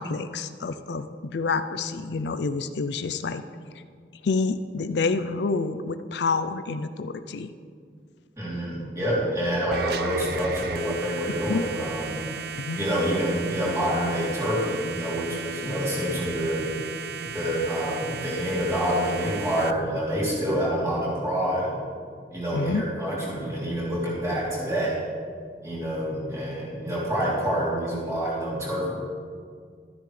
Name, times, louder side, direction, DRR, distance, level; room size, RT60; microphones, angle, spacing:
voice 1, 0.0-3.4 4.2-7.5 11.5-11.6 12.6-12.8 22.5-22.8, left 4 dB, 80° left, 11 dB, 0.5 m, -28 dB
voice 2, 8.4-12.4 12.7-16.7 17.2-21.8 22.3-25.0 25.6-28.9, equal, 15° right, -7 dB, 3.1 m, -27 dB
sound 1, 9.7-19.7, right 6 dB, 60° right, 0.4 m, -36 dB
13.0 x 10.0 x 3.3 m, 2.1 s
head